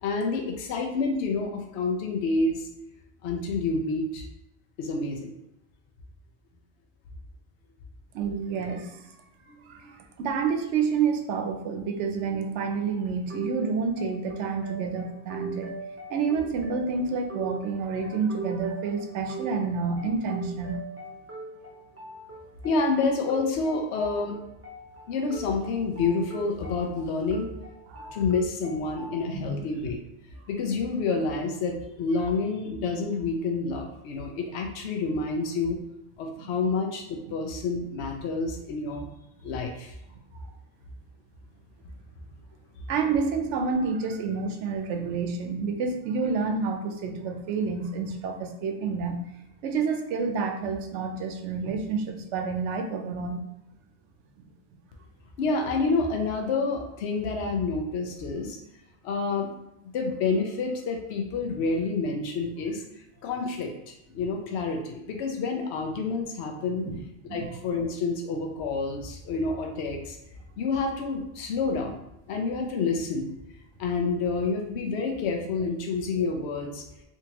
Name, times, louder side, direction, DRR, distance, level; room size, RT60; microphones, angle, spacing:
voice 1, 0.0-2.7 3.2-4.3 4.8-5.4 9.5-9.9 22.6-24.4 25.1-27.5 28.1-30.0 30.5-35.8 36.2-39.1 39.4-39.9 55.4-58.6 59.0-59.5 59.8-62.8 63.2-66.8 67.3-70.2 70.6-72.0 72.3-73.3 73.8-76.8, left 4 dB, 75° left, 2 dB, 0.9 m, -28 dB
voice 2, 8.1-9.1 9.7-15.7 16.1-20.8 27.9-28.2 29.3-29.6 36.4-36.5 42.9-49.2 49.6-53.5 66.8-67.0 67.3-67.5, right 5 dB, 80° right, 4 dB, 0.9 m, -29 dB
sound 1, 13.3-29.3, right 4 dB, 20° right, 0.5 m, -41 dB
3.5 x 2.8 x 2.9 m, 0.85 s
omnidirectional pair, 1.2 m